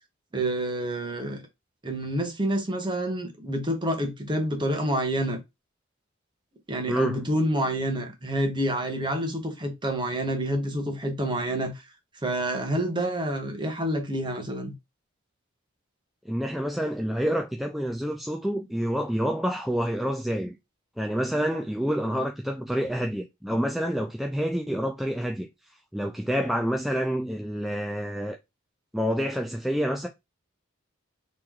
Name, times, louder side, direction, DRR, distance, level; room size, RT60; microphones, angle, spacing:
voice 1, 0.3-1.4 1.8-5.4 6.7-11.9 12.2-14.7, right 1 dB, 25° right, 1.0 m, -28 dB
voice 2, 6.9-7.2 16.3-20.5 21.0-25.5 25.9-28.4 28.9-30.1, equal, ahead, 0.3 m, -28 dB
3.1 x 2.9 x 3.7 m
head